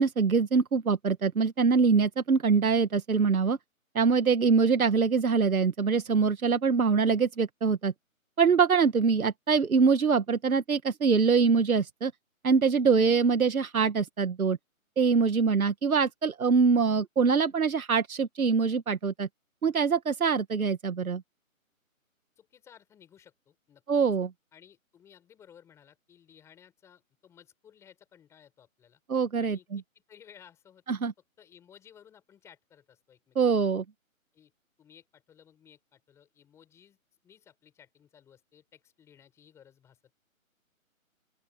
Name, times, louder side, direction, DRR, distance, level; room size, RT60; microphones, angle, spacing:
voice 1, 0.0-3.6 3.9-7.9 8.4-12.1 12.4-14.6 15.0-19.3 19.6-21.2 23.9-24.3 29.1-29.6 30.9-31.1 33.3-33.8, right 5 dB, 85° right, 1.7 m, -24 dB
voice 2, 22.4-23.8 24.5-29.0 29.4-30.8 31.4-33.6 34.3-34.5 34.8-37.0 37.2-40.1, left 9 dB, 5° left, 5.2 m, -57 dB
open air
hypercardioid pair, 170°, 41 cm